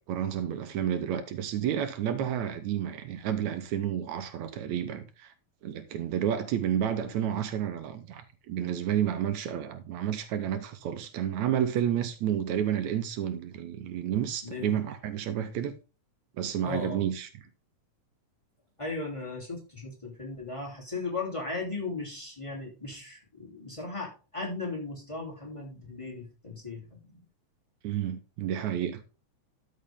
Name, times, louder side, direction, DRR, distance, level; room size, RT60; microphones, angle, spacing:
voice 1, 0.1-5.3 5.6-15.7 16.4-17.3 27.8-29.0, right 10 dB, 80° right, 2.0 m, -30 dB
voice 2, 14.4-14.8 16.6-17.0 18.8-27.2, left 3 dB, 10° left, 2.8 m, -37 dB
12.5 x 5.4 x 3.6 m
omnidirectional pair, 3.4 m